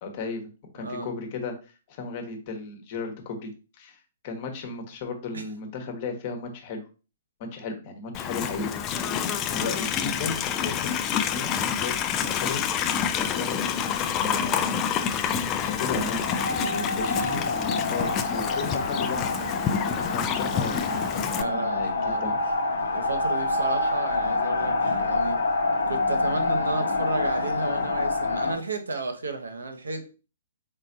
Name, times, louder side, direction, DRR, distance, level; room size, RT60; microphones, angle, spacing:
voice 1, 0.0-3.5 3.8-6.8 7.4-8.7 9.0-12.6 13.1-13.9 14.2-14.9 15.3-16.3 16.6-19.6 20.0-21.1 21.3-22.3, left 3 dB, 40° left, 1.1 m, -35 dB
voice 2, 0.8-1.1 5.3-5.4 17.1-17.4 21.3-22.3 22.9-25.4 25.9-30.1, right 3 dB, 75° right, 0.8 m, -33 dB
Livestock farm animals working animals, 8.1-21.4, left 8 dB, 25° left, 0.4 m, -28 dB
sound 1, 15.5-28.6, left 3 dB, 65° left, 0.8 m, -27 dB
4.1 x 3.7 x 2.6 m
figure-of-eight pair, 120°, 0 cm